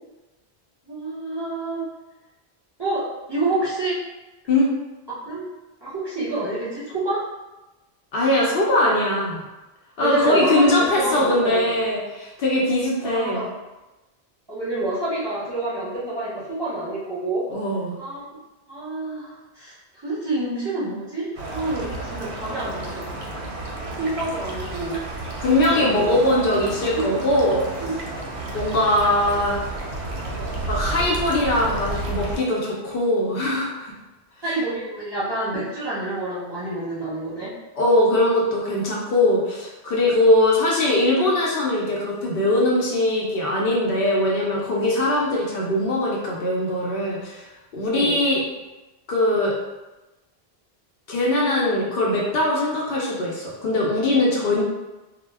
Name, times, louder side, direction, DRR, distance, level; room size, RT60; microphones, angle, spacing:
voice 1, 0.8-1.8 2.8-4.0 5.1-5.5 5.8-7.2 10.0-11.8 13.0-13.5 14.5-17.5 18.0-18.2 18.7-23.1 24.0-25.1 25.4-26.1 26.7-27.2 27.8-28.0 34.4-37.5 47.9-48.2, right 2 dB, 25° right, -10 dB, 0.7 m, -28 dB
voice 2, 8.1-9.4 10.0-13.4 17.5-17.9 25.4-27.6 28.5-29.6 30.6-33.9 37.8-47.5 47.7-48.4 49.1-49.5 51.1-54.6, left 1 dB, 65° left, -3 dB, 0.7 m, -21 dB
sound 1, 21.4-32.4, right 2 dB, 85° right, 0.9 m, -31 dB
2.1 x 2.0 x 3.2 m, 1.1 s
omnidirectional pair, 1.1 m